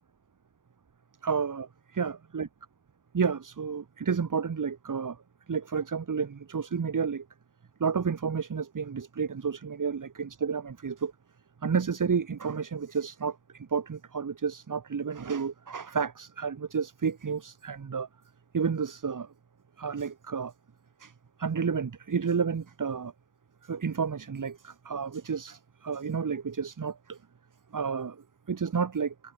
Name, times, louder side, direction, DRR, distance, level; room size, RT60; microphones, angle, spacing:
voice 1, 1.2-2.5 3.1-5.2 5.5-7.3 7.8-11.1 11.6-18.1 18.5-19.3 19.8-20.5 21.0-21.1 21.4-23.1 23.6-27.2 27.7-29.1, right 6 dB, 70° right, 7.3 m, -31 dB
wide cardioid pair, 120°, 33 cm